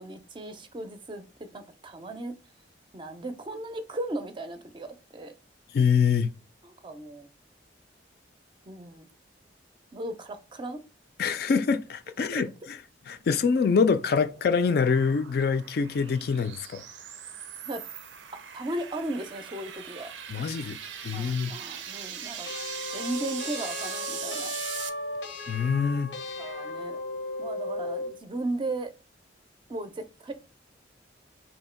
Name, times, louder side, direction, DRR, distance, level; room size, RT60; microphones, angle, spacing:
voice 1, 0.0-2.3 2.9-5.3 6.6-7.3 8.7-9.1 9.9-10.8 12.3-12.4 17.7-17.8 18.5-20.1 21.1-22.5 22.9-24.5 26.4-27.0 27.4-28.9 29.7-30.3, right 2 dB, 25° right, 0.4 m, -36 dB
voice 2, 5.7-6.3 11.2-12.5 13.1-16.8 20.3-21.5 25.5-26.1, left 5 dB, 55° left, 0.3 m, -25 dB
sound 1, 13.2-24.9, right 9 dB, 90° right, 0.5 m, -40 dB
sound 2, 22.5-28.2, left 2 dB, 85° left, 0.7 m, -36 dB
2.8 x 2.7 x 4.3 m
head